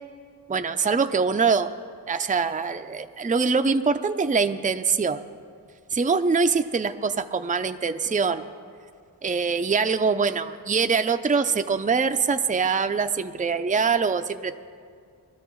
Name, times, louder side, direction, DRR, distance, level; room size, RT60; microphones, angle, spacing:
voice 1, 0.5-1.7 2.1-5.2 5.9-8.5 9.2-14.5, right 5 dB, 20° right, 9 dB, 0.5 m, -23 dB
22.0 x 13.0 x 3.1 m, 2.2 s
wide cardioid pair, 50°, 42 cm